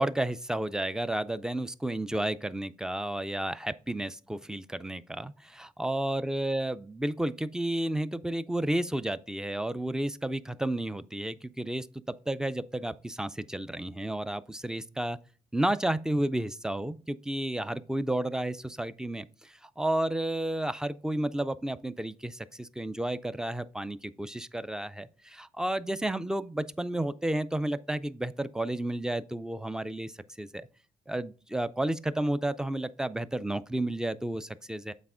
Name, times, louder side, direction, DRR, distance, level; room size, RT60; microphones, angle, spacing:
voice 1, 0.0-15.2 15.5-30.1 30.4-30.7 31.1-34.9, right 1 dB, 5° right, 0.3 m, -32 dB
8.2 x 4.2 x 3.7 m
cardioid pair, 140°, 13 cm